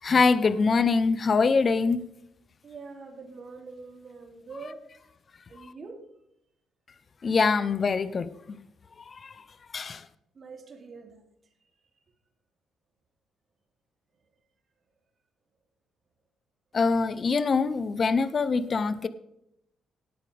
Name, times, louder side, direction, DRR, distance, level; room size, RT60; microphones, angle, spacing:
voice 1, 0.0-2.0 7.2-8.6 9.1-9.3 9.7-10.0 16.7-19.1, left 4 dB, 40° left, 13 dB, 0.8 m, -24 dB
voice 2, 2.6-4.9 5.5-6.1 10.3-11.2 11.9-12.0, right 4 dB, 45° right, 2 dB, 3.0 m, -44 dB
18.0 x 8.9 x 3.5 m, 0.79 s
cardioid pair, 90°, 0 cm